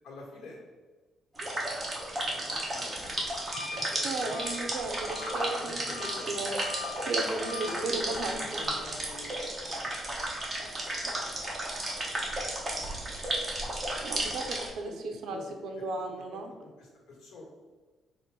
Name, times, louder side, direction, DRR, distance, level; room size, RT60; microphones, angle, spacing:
voice 1, 0.0-0.6 2.2-4.3 4.6-4.7 5.6-6.5 7.4-9.3 9.6-9.8 10.6-10.7 11.0-11.4 13.5-13.7 14.9-15.5 16.1-17.4, left 2 dB, 85° left, -2 dB, 1.4 m, -46 dB
sound 1, 1.4-14.7, right 1 dB, 20° right, 0.8 m, -33 dB
Wind instrument woodwind instrument, 3.5-7.8, left 5 dB, 65° left, 0.5 m, -43 dB
voice 2, 4.0-6.5 7.0-8.6 14.0-16.5, right 3 dB, 65° right, 4 dB, 0.6 m, -35 dB
4.3 x 2.5 x 4.6 m, 1.3 s
cardioid pair, 170°, 0 cm